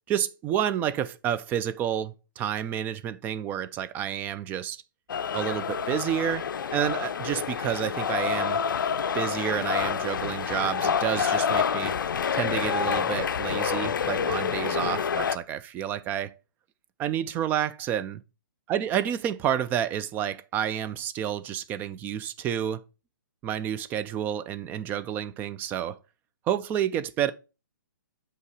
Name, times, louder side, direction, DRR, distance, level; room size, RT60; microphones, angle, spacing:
voice 1, 0.1-4.8 5.3-8.6 9.1-11.9 12.3-16.4 17.0-18.2 18.7-22.8 23.4-26.0 26.5-27.3, right 10 dB, 15° right, 0.3 m, -29 dB
sound 1, 5.1-15.4, left 7 dB, 70° left, 0.4 m, -28 dB
8.0 x 2.9 x 4.8 m
hypercardioid pair, 135°, 11 cm